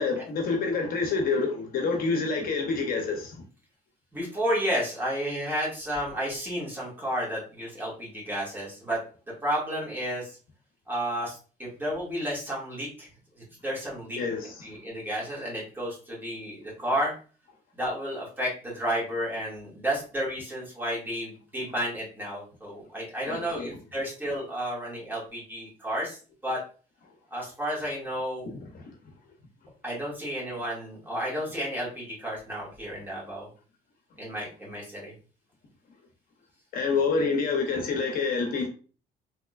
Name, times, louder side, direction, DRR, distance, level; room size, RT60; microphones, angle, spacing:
voice 1, 0.0-3.4 14.2-14.7 23.2-23.7 28.5-28.9 36.7-38.7, left 4 dB, 60° left, 0.8 m, -28 dB
voice 2, 4.1-9.0 9.4-10.4 10.9-13.1 13.6-14.2 14.6-17.1 17.8-26.6 27.3-28.5 29.8-33.5 34.2-35.1, equal, 10° right, 1.8 m, -32 dB
3.5 x 2.9 x 2.4 m
cardioid pair, 110°, 17 cm